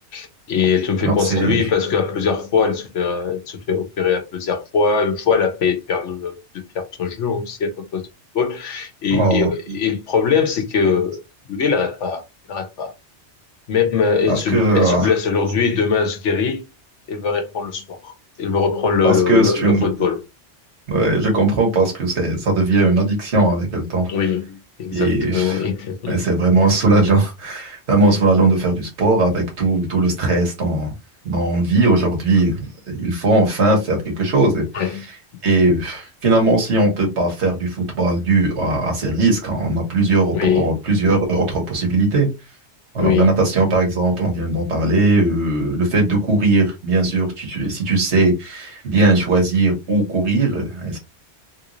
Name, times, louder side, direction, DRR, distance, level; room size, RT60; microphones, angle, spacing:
voice 1, 0.1-6.4 6.7-8.0 8.3-11.2 11.5-12.2 12.5-12.9 13.7-16.6 17.1-18.1 18.4-20.2 24.1-26.2 28.1-28.2 34.7-35.0 40.3-40.7 43.0-43.3, left 6 dB, 90° left, 1.2 m, -21 dB
voice 2, 1.0-1.6 9.1-9.8 14.3-15.1 19.0-19.9 20.9-24.1 24.9-25.7 26.1-30.9 31.3-34.6 34.9-35.0 35.4-42.3 42.9-51.0, right 2 dB, 70° right, 1.6 m, -18 dB
3.5 x 2.5 x 3.0 m
omnidirectional pair, 1.2 m